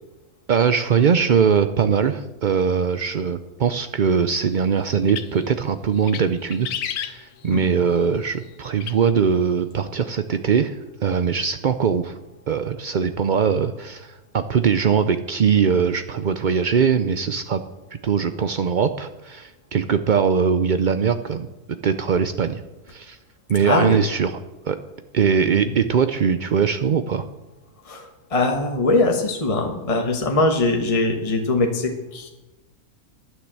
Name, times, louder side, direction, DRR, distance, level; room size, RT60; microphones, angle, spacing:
voice 1, 0.5-6.7 7.0-12.2 12.5-17.6 18.0-21.5 21.8-22.6 22.9-23.2 23.5-24.4 24.6-24.8 25.1-27.3, right 6 dB, 75° right, 10 dB, 0.4 m, -21 dB
sound 1, 4.9-5.5 5.9-6.3 6.5-7.6 8.8-8.9, left 9 dB, 80° left, 1.3 m, -31 dB
voice 2, 23.6-24.0 25.6-25.8 27.8-32.3, left 2 dB, 25° left, 3 dB, 1.3 m, -22 dB
11.5 x 9.6 x 7.5 m, 1.0 s
omnidirectional pair, 1.6 m